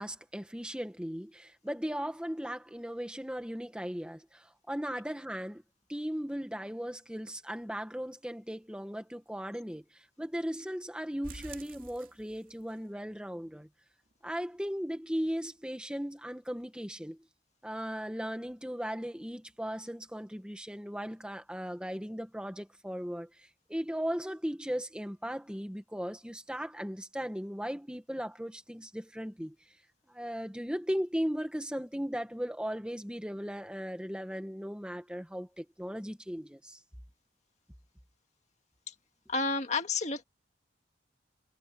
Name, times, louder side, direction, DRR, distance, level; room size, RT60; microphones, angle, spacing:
voice 1, 0.0-5.6 5.9-13.7 14.2-17.2 17.6-29.6 30.1-36.8, equal, 5° right, 1.7 m, -37 dB
sound 1, 11.2-12.8 13.1-13.2 13.6-13.7 14.1-14.2, right 3 dB, 45° right, 3.0 m, -48 dB
voice 2, 39.3-40.2, left 3 dB, 35° left, 2.1 m, -30 dB
head